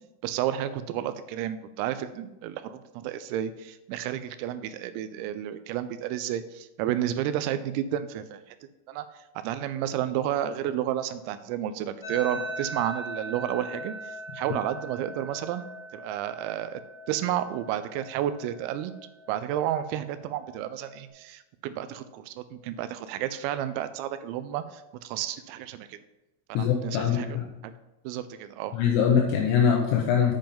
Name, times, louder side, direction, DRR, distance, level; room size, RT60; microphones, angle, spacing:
voice 1, 0.2-8.6 8.9-15.7 15.9-16.8 17.1-18.9 19.3-26.0 26.5-27.7 28.0-28.8, right 11 dB, 90° right, 12 dB, 3.3 m, -31 dB
sound 1, 12.0-21.1, right 1 dB, 15° left, 1.2 m, -41 dB
voice 2, 26.5-27.5 28.7-30.3, left 7 dB, 80° left, 1 dB, 3.0 m, -23 dB
8.8 x 5.3 x 5.4 m, 0.99 s
omnidirectional pair, 5.9 m